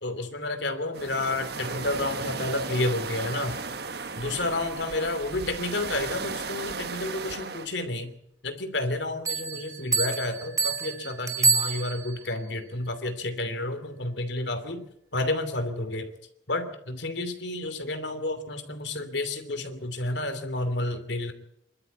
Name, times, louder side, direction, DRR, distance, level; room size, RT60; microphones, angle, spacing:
voice 1, 0.0-3.6 4.2-8.2 8.4-14.8 15.1-16.1 16.5-21.3, left 2 dB, 70° left, 9 dB, 2.9 m, -30 dB
sound 1, 0.9-7.7, right 4 dB, 55° right, 1.3 m, -35 dB
Bell, 9.3-12.3, right 4 dB, 15° right, 1.4 m, -27 dB
25.0 x 12.5 x 8.4 m, 0.77 s
head